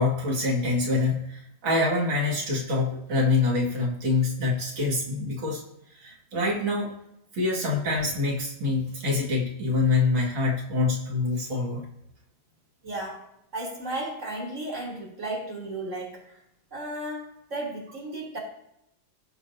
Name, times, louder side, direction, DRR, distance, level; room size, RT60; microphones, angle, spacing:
voice 1, 0.0-5.6 5.9-6.9 7.3-11.8, left 3 dB, 90° right, -2 dB, 2.9 m, -25 dB
voice 2, 12.8-13.2 13.5-16.3 16.7-18.4, right 1 dB, 40° right, -4 dB, 3.6 m, -34 dB
18.5 x 7.2 x 2.8 m, 0.78 s
omnidirectional pair, 2.1 m